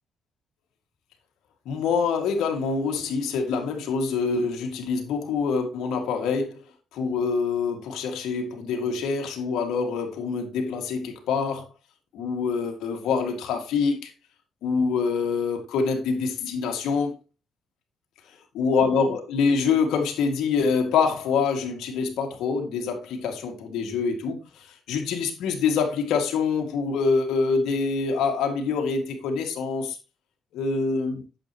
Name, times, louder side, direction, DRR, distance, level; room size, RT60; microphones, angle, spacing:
voice 1, 1.7-6.5 6.9-11.7 12.1-14.1 14.6-17.2 18.5-30.0 30.5-31.3, left 5 dB, 85° left, 2.0 m, -25 dB
8.8 x 7.5 x 3.0 m
cardioid pair, 90°, 0 cm